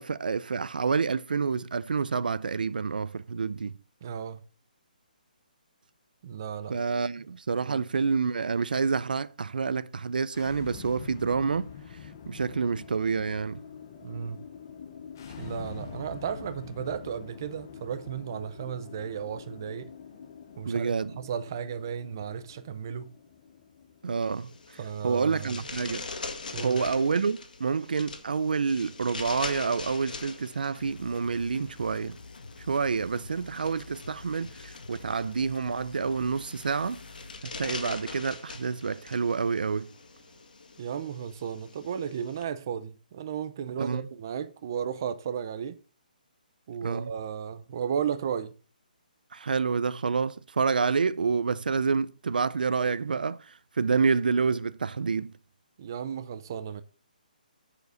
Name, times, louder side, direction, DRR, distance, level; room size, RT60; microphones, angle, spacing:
voice 1, 0.0-3.8 6.7-11.7 12.3-13.6 20.6-21.2 24.0-24.5 25.0-26.1 26.6-32.2 32.7-37.0 37.4-39.9 43.8-44.1 46.8-47.1 49.3-55.3, right 5 dB, 70° right, 0.5 m, -28 dB
voice 2, 4.0-4.4 6.2-6.8 7.6-7.8 14.0-14.4 15.4-19.9 20.6-23.1 24.8-25.6 26.5-26.8 40.8-45.8 46.7-48.5 55.8-56.8, right 8 dB, 25° right, 0.5 m, -34 dB
sound 1, 10.3-25.2, left 7 dB, 25° left, 0.8 m, -46 dB
sound 2, 24.2-42.4, left 4 dB, 65° left, 2.1 m, -43 dB
sound 3, 30.7-37.4, left 3 dB, 85° left, 1.8 m, -48 dB
7.2 x 6.7 x 5.5 m
hypercardioid pair, 180°, 5 cm